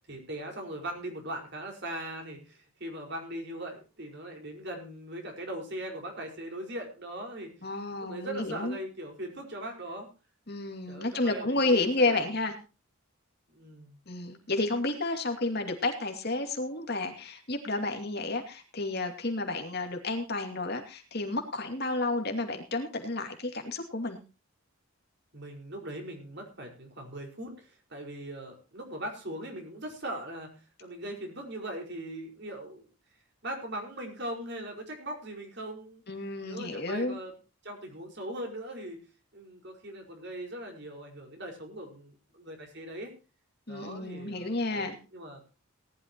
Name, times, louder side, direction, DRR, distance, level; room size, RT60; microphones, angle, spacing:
voice 1, 0.1-7.5 8.0-10.1 10.9-12.3 13.5-14.0 25.3-32.8 33.4-37.3 37.6-39.0 39.3-43.1 43.7-45.4, right 1 dB, 50° right, 3 dB, 4.9 m, -40 dB
voice 2, 7.6-8.8 10.5-12.5 14.1-24.2 36.1-37.2 43.7-45.0, left 2 dB, 45° left, 5 dB, 2.6 m, -31 dB
19.0 x 12.0 x 3.0 m, 0.32 s
head